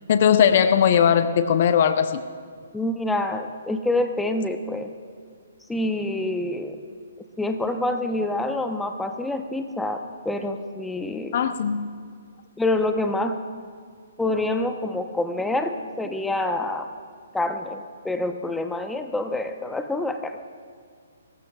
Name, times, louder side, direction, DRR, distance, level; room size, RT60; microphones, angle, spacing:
voice 1, 0.1-2.2 11.3-11.9, left 8 dB, 50° left, 10 dB, 0.7 m, -19 dB
voice 2, 2.7-4.9 5.7-6.8 7.4-11.4 12.6-13.4 14.2-16.9 17.3-20.4, left 2 dB, 5° left, 6 dB, 0.8 m, -27 dB
29.5 x 15.0 x 2.4 m, 2.1 s
figure-of-eight pair, 135°, 0 cm